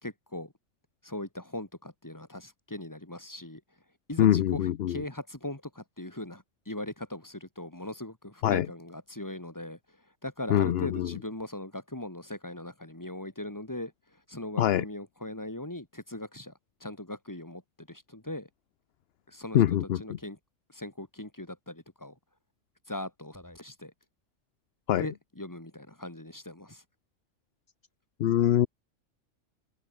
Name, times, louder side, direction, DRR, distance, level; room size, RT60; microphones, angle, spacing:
voice 1, 0.0-0.5 1.0-3.6 4.1-9.8 10.2-13.9 14.3-16.5 16.8-18.5 19.3-19.6 20.0-20.4 20.7-22.1 22.9-23.9 25.0-26.8, left 1 dB, 15° left, 2.8 m, -40 dB
voice 2, 4.2-5.0 8.4-8.7 10.5-11.1 14.6-14.8 19.5-20.0 24.9-25.0 28.2-28.7, left 11 dB, 60° left, 0.8 m, -24 dB
omnidirectional pair, 1.3 m